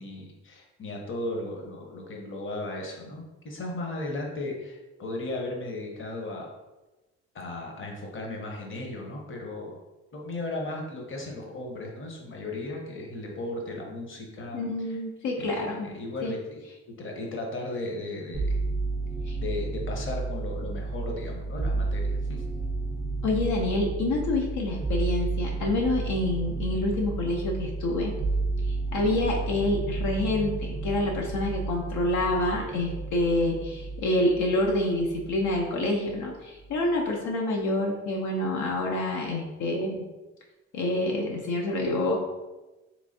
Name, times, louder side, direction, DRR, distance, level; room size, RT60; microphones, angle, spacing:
voice 1, 0.0-6.5 7.3-9.8 10.1-14.6 14.8-15.0 15.4-15.5 15.8-16.6 17.0-18.6 19.3-22.4, left 2 dB, 40° left, 0 dB, 0.8 m, -36 dB
voice 2, 14.5-15.9 16.2-16.4 19.3-19.4 23.2-28.1 28.9-40.0 40.7-42.1, left 1 dB, 80° left, -1 dB, 0.6 m, -27 dB
sound 1, 18.3-35.8 36.1-36.9, right 3 dB, 15° right, 0.4 m, -32 dB
3.4 x 3.0 x 2.6 m, 1.1 s
cardioid pair, 90°, 30 cm